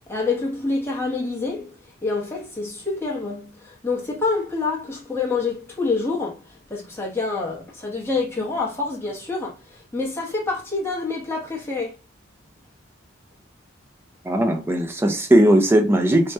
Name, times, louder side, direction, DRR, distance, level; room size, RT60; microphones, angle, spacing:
voice 1, 0.1-1.7 2.0-6.4 6.7-11.9, left 3 dB, 10° left, 0.8 m, -27 dB
voice 2, 14.2-16.3, right 1 dB, 10° right, 0.3 m, -18 dB
3.3 x 2.1 x 2.6 m
head